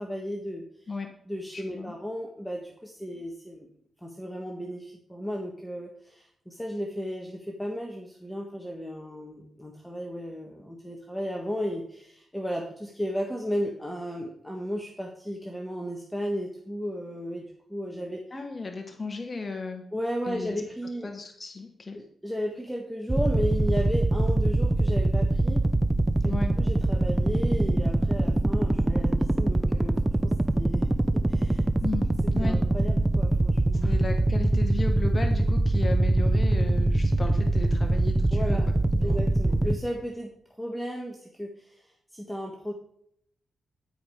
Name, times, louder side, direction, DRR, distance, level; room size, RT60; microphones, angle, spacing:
voice 1, 0.0-0.9 1.2-3.7 4.0-18.2 19.9-21.1 21.9-25.7 26.2-30.0 30.2-31.7 32.4-33.9 38.3-38.7 39.0-40.3 40.6-42.7, equal, 5° left, 0 dB, 1.5 m, -34 dB
voice 2, 1.5-1.9 18.3-19.8 20.3-20.6 21.0-22.0 26.2-26.5 31.8-32.6 33.7-39.2, left 3 dB, 35° left, 4 dB, 1.2 m, -35 dB
sound 1, 23.1-39.8, right 2 dB, 20° right, 0.6 m, -23 dB
13.0 x 5.1 x 4.9 m, 0.68 s
cardioid pair, 70°, 0 cm